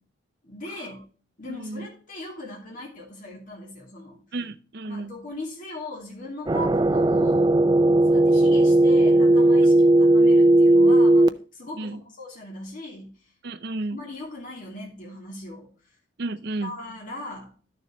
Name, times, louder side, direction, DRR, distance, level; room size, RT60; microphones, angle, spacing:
voice 1, 0.4-1.1 1.4-4.2 4.9-7.5 8.1-13.3 13.9-15.7 16.6-17.5, left 1 dB, 45° left, 2.9 m, -39 dB
voice 2, 1.5-1.9 4.3-5.1 11.8-12.0 13.4-14.0 16.2-16.7, right 2 dB, 55° right, 0.7 m, -32 dB
sound 1, 6.5-11.3, right 1 dB, 20° right, 0.4 m, -17 dB
12.0 x 6.7 x 3.1 m
head